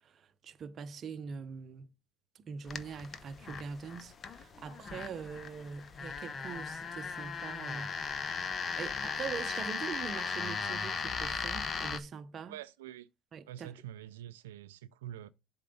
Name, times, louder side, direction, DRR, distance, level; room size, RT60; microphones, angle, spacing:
voice 1, 0.0-1.9 2.3-8.0 8.4-8.5 8.8-12.5 13.3-13.7, right 6 dB, 40° right, 0.8 m, -43 dB
sound 1, 2.7-12.0, left 5 dB, 35° left, 0.8 m, -37 dB
voice 2, 12.5-13.1 13.5-15.3, right 12 dB, 90° right, 0.4 m, -46 dB
7.6 x 3.9 x 5.3 m
supercardioid pair, 95°, 0 cm